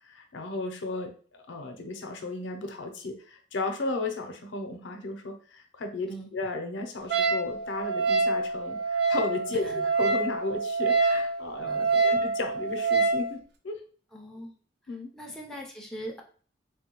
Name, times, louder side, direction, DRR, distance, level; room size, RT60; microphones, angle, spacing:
voice 1, 0.1-13.4 13.6-13.8 14.9-15.1, left 2 dB, 80° left, 5 dB, 0.6 m, -34 dB
Wind instrument woodwind instrument, 7.1-13.3, right 4 dB, 55° right, 0.4 m, -26 dB
voice 2, 9.5-9.9 11.6-12.2 14.1-14.5 15.1-16.2, right 1 dB, 5° left, -1 dB, 0.5 m, -41 dB
3.4 x 2.2 x 2.9 m, 0.42 s
head